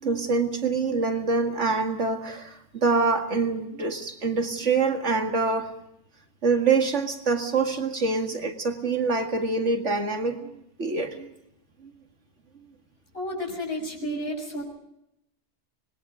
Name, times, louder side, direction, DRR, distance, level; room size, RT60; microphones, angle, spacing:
voice 1, 0.0-5.7 6.4-11.3 11.8-11.9 14.1-14.2, right 4 dB, 70° right, 4 dB, 2.4 m, -25 dB
voice 2, 13.1-14.6, left 1 dB, 55° left, 0 dB, 6.6 m, -31 dB
25.5 x 21.0 x 4.9 m, 0.83 s
omnidirectional pair, 1.3 m